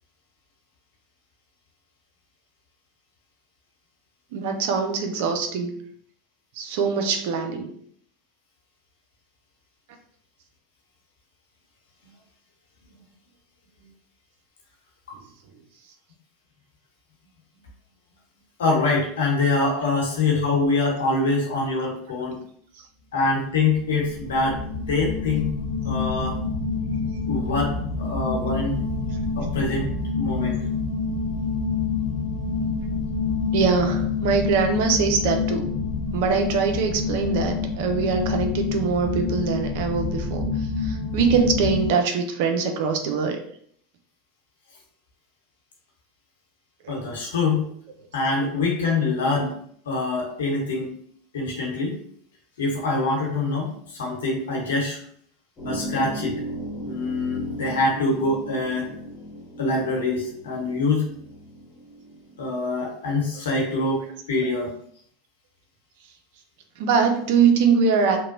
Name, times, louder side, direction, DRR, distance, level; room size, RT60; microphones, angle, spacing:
voice 1, 4.3-5.8 6.5-7.7 22.8-22.9 33.5-35.7 36.1-43.4 46.8-46.9 66.8-68.2, right 5 dB, 65° right, 5 dB, 0.5 m, -23 dB
voice 2, 18.6-22.4 23.1-25.5 25.8-26.4 27.3-28.8 29.4-30.6 46.9-47.7 48.1-49.5 49.8-50.9 51.3-52.0 52.6-55.0 55.6-56.4 56.8-58.9 59.6-61.1 62.4-64.7, left 3 dB, 80° left, -2 dB, 0.9 m, -24 dB
sound 1, 23.8-41.9, left 4 dB, 55° left, 1.0 m, -27 dB
sound 2, 55.6-62.6, right 1 dB, 20° left, 1.1 m, -36 dB
2.9 x 2.1 x 2.6 m, 0.62 s
hypercardioid pair, 95°, 0 cm